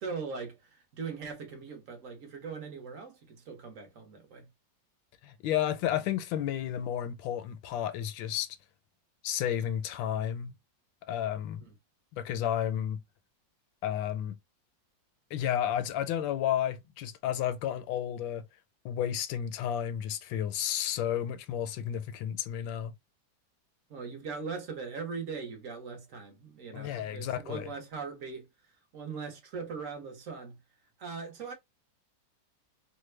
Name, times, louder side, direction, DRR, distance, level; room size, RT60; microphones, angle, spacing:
voice 1, 0.0-4.5 11.7-11.8 23.9-28.5 28.9-30.6 31.0-31.5, right 5 dB, 50° right, 1.1 m, -40 dB
voice 2, 5.2-8.5 9.2-10.5 11.1-11.6 12.1-13.0 13.8-14.4 15.3-18.4 18.8-22.9 26.7-27.7, left 10 dB, 80° left, 1.3 m, -32 dB
3.2 x 2.1 x 3.1 m
omnidirectional pair, 2.1 m